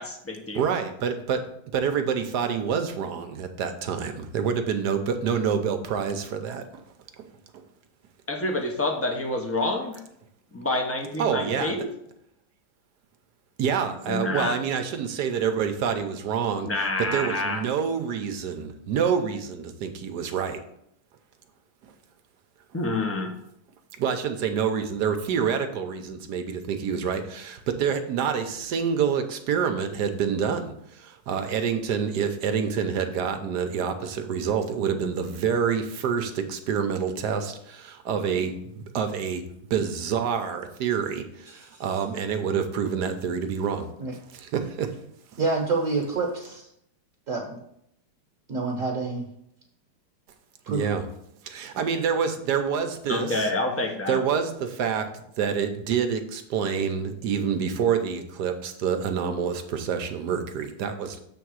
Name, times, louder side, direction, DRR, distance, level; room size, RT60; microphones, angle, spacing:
voice 1, 0.0-0.6 8.3-10.0 10.5-11.9 14.1-14.5 16.6-17.6 22.7-23.3 53.1-54.2, left 2 dB, 15° left, 1 dB, 0.5 m, -28 dB
voice 2, 0.5-1.4 1.7-6.6 11.2-11.7 13.6-16.7 17.1-20.6 24.0-30.7 31.0-38.5 38.9-39.4 39.7-41.2 41.8-43.9 44.3-44.9 50.7-51.0 51.5-53.5 54.1-55.1 55.4-61.2, right 7 dB, 70° right, 7 dB, 1.2 m, -27 dB
voice 3, 41.6-42.0 44.0-44.1 45.4-46.7 47.3-47.6 48.5-49.3 50.7-50.9, right 3 dB, 50° right, 0 dB, 1.3 m, -28 dB
7.2 x 3.5 x 6.3 m, 0.75 s
omnidirectional pair, 1.9 m